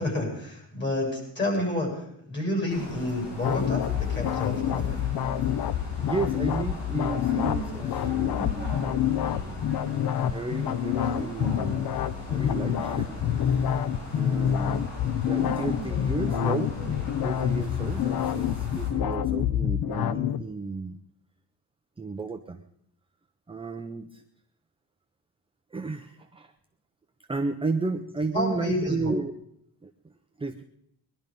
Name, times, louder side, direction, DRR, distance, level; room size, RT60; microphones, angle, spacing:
voice 1, 0.0-5.0 28.3-29.1, left 1 dB, 25° left, 0 dB, 8.0 m, -30 dB
sound 1, 2.7-18.9, equal, 75° left, 6.6 m, -38 dB
sound 2, 3.4-20.4, left 10 dB, 60° left, 0.8 m, -27 dB
voice 2, 6.0-9.7 10.3-11.8 12.3-13.6 14.1-14.9 15.3-16.8 17.2-21.0 22.0-22.6 23.5-24.2 25.7-26.5 27.3-29.3 29.8-29.9 30.4-30.6, right 3 dB, 15° right, 5 dB, 0.7 m, -33 dB
21.5 x 12.0 x 5.3 m, 0.74 s
wide cardioid pair, 150°, 42 cm